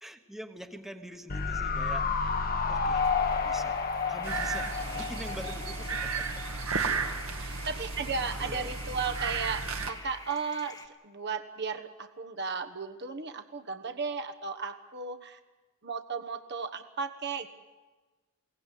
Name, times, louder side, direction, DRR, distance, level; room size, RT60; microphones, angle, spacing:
voice 1, 0.0-2.3 2.7-3.1 3.4-3.8 4.1-6.9 8.2-8.8, equal, ahead, 7 dB, 1.2 m, -45 dB
sound 1, 1.3-6.5 6.8-6.9, left 5 dB, 40° left, 1.0 m, -31 dB
sound 2, 2.9-10.9, left 3 dB, 15° left, 1.4 m, -47 dB
sound 3, 4.2-9.9, right 4 dB, 70° right, 1.9 m, -34 dB
voice 2, 6.7-10.8 11.0-15.4 15.8-17.5, right 5 dB, 50° right, 8 dB, 1.2 m, -35 dB
22.5 x 18.0 x 8.4 m, 1.2 s
head